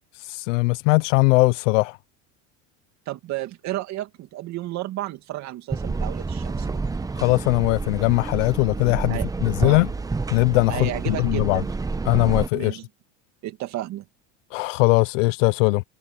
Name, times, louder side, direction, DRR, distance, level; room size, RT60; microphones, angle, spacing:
voice 1, 0.2-2.0 7.2-9.9 10.3-11.6 12.1-12.8 14.5-15.8, left 25 dB, 85° left, 0.6 m, -20 dB
voice 2, 3.1-6.8 9.1-9.3 9.6-9.8 10.7-11.7 12.5-12.8 13.4-14.0, right 15 dB, 50° right, 2.3 m, -32 dB
sound 1, 5.7-12.5, right 4 dB, 10° right, 0.8 m, -29 dB
supercardioid pair, 130°, 37 cm